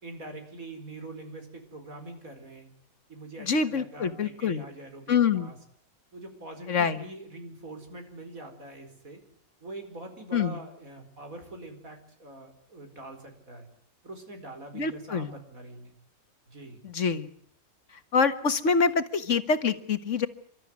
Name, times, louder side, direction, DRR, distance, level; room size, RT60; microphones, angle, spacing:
voice 1, 0.0-2.7 3.1-5.6 6.1-9.2 9.6-13.7 14.0-15.9 16.5-16.8, right 2 dB, 70° right, 5 dB, 5.2 m, -44 dB
voice 2, 3.4-4.6 5.1-5.5 6.7-7.0 10.3-10.6 14.7-15.3 16.8-17.3 18.1-20.3, left 5 dB, 55° left, 11 dB, 1.8 m, -25 dB
29.0 x 13.5 x 9.6 m, 0.63 s
omnidirectional pair, 1.5 m